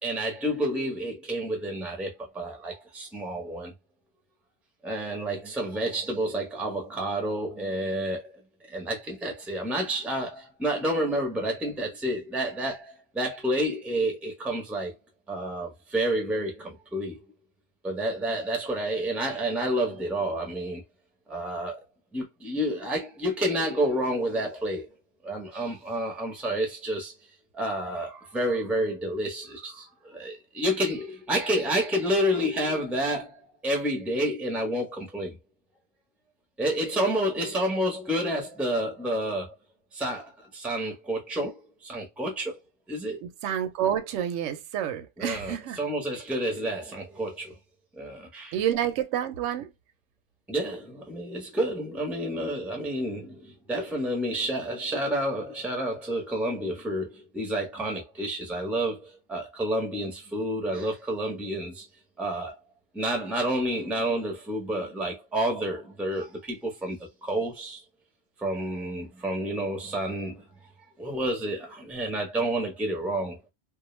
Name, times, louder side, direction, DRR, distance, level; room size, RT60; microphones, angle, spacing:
voice 1, 0.0-3.7 4.8-8.3 8.7-14.9 15.3-17.2 17.8-20.8 21.3-21.8 22.1-24.9 25.2-27.1 27.5-35.4 36.6-39.5 39.9-42.6 42.9-43.2 45.2-47.5 47.9-48.6 50.5-61.9 62.2-62.6 62.9-67.8 68.4-70.5 71.0-73.4, right 1 dB, ahead, 0.5 m, -29 dB
voice 2, 43.2-45.8 48.5-49.7, right 10 dB, 70° right, 0.8 m, -29 dB
2.3 x 2.1 x 3.0 m
omnidirectional pair, 1.5 m